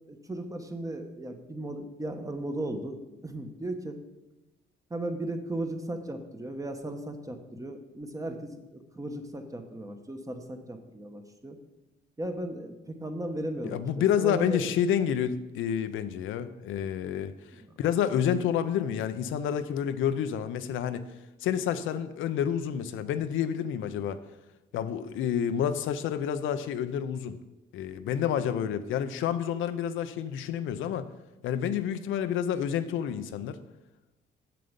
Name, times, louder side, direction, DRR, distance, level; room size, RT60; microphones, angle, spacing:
voice 1, 0.1-3.0 3.2-4.0 4.9-11.6 12.2-14.7 17.5-17.8, right 1 dB, 15° right, 6 dB, 1.0 m, -36 dB
voice 2, 13.6-17.3 17.8-21.0 21.4-24.2 24.7-27.4 27.7-31.1 31.4-33.6, left 9 dB, 80° left, 11 dB, 0.6 m, -29 dB
7.6 x 6.8 x 5.2 m, 1.0 s
cardioid pair, 90°, 20 cm